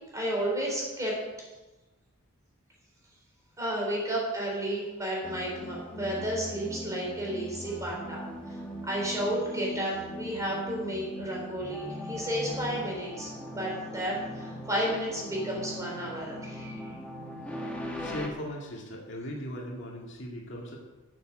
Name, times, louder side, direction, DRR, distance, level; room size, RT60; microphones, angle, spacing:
voice 1, 0.1-1.1 3.6-8.6 8.8-16.9, right 1 dB, 15° right, -3 dB, 4.0 m, -32 dB
sound 1, 5.2-18.3, left 1 dB, 5° left, 1.3 m, -40 dB
voice 2, 18.0-20.8, equal, 60° left, -1 dB, 2.1 m, -38 dB
12.5 x 7.0 x 6.4 m, 1.1 s
head